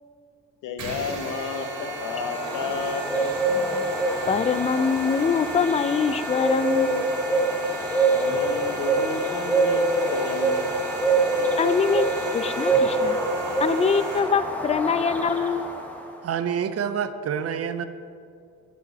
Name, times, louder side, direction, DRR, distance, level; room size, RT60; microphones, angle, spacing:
voice 1, 0.6-3.4 8.0-10.8 11.2-11.6, left 5 dB, 85° left, 7 dB, 1.0 m, -32 dB
sound 1, 0.8-14.2, right 3 dB, 80° right, 2.7 m, -35 dB
sound 2, 1.5-16.1, right 2 dB, 5° left, 1.3 m, -26 dB
voice 2, 4.3-7.0 11.6-12.1 12.3-13.2 13.6-15.9, left 6 dB, 20° left, 13 dB, 0.4 m, -24 dB
voice 3, 16.2-17.9, right 8 dB, 50° right, 11 dB, 0.6 m, -27 dB
16.0 x 5.4 x 4.1 m, 2.4 s
cardioid pair, 90°, 30 cm